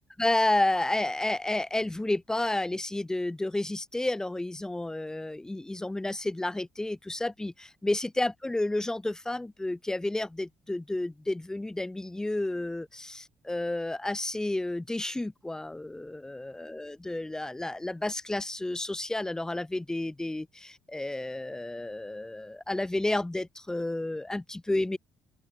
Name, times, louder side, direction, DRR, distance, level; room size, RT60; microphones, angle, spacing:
voice 1, 0.2-25.0, left 2 dB, 10° left, 4.6 m, -31 dB
open air
cardioid pair, 125°, 6 cm